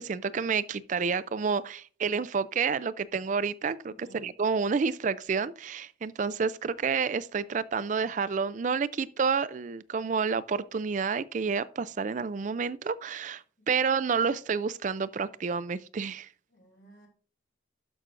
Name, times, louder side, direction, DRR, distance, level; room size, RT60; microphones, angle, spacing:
voice 1, 0.0-16.3, right 5 dB, 40° right, 0.3 m, -29 dB
voice 2, 3.9-4.3 13.6-13.9 16.5-17.1, right 2 dB, 65° left, 3.1 m, -55 dB
12.0 x 6.0 x 2.5 m
head